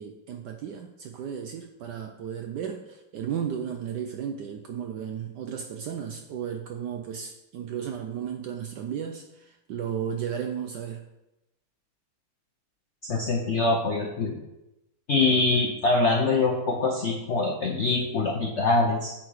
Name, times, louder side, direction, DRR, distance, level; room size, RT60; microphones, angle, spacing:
voice 1, 0.0-11.0, right 8 dB, 75° right, 5 dB, 1.0 m, -34 dB
voice 2, 13.0-14.4 15.1-19.1, left 3 dB, 70° left, 0 dB, 0.6 m, -24 dB
8.5 x 4.3 x 4.7 m, 0.93 s
omnidirectional pair, 2.3 m